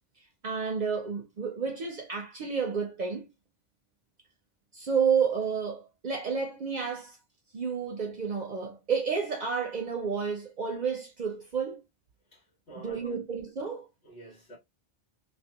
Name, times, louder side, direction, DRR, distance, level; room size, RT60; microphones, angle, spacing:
voice 1, 0.4-3.3 4.7-7.2 7.5-11.8 12.8-13.9, right 6 dB, 55° right, 0.6 m, -30 dB
voice 2, 12.3-13.2 14.0-14.6, right 2 dB, 75° left, 1.3 m, -49 dB
2.7 x 2.3 x 2.2 m
omnidirectional pair, 1.0 m